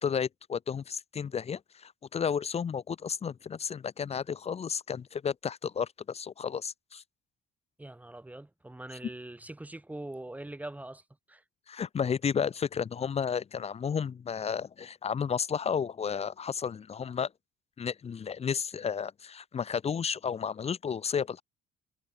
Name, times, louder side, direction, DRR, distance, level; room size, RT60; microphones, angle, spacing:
voice 1, 0.0-7.0 11.7-17.3 17.8-21.4, left 7 dB, 40° left, 2.7 m, -32 dB
voice 2, 7.8-11.0 11.3-11.4, right 1 dB, 10° right, 4.3 m, -42 dB
cardioid pair, 110°, 17 cm